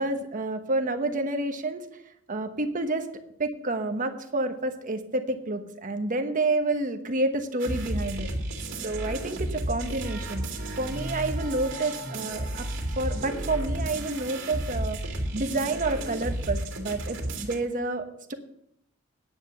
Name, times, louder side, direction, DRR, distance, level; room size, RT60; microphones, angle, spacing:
voice 1, 0.0-1.8 2.3-3.1 3.4-8.3 8.8-10.5 10.8-12.7 13.0-15.0 15.3-18.3, right 2 dB, 40° right, 7 dB, 1.1 m, -29 dB
sound 1, 7.6-17.6, right 1 dB, 65° right, 2.4 m, -32 dB
9.9 x 8.0 x 6.8 m, 0.75 s
head